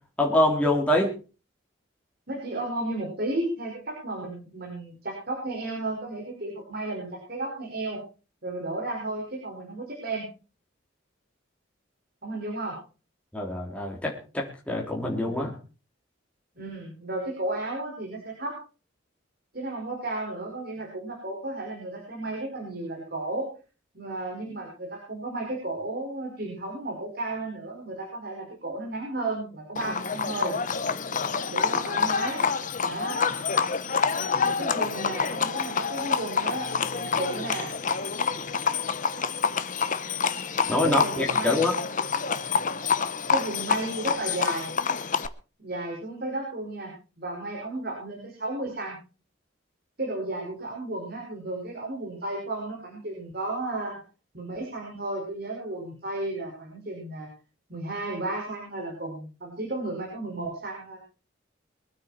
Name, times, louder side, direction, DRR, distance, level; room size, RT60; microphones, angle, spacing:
voice 1, 0.2-1.1 13.3-15.6 40.7-41.7, left 1 dB, 5° left, -2 dB, 3.5 m, -25 dB
voice 2, 2.3-8.0 8.4-10.3 12.2-12.8 16.6-18.6 19.5-23.5 23.9-30.5 31.5-32.4 32.8-33.2 34.4-37.7 40.8-41.7 43.3-44.7 45.6-49.0 50.0-53.9 54.3-57.3 57.7-61.0, right 2 dB, 50° right, -1 dB, 5.6 m, -33 dB
Livestock farm animals working animals, 29.8-45.3, left 5 dB, 40° left, 0.9 m, -27 dB
23.5 x 9.4 x 4.4 m, 0.35 s
head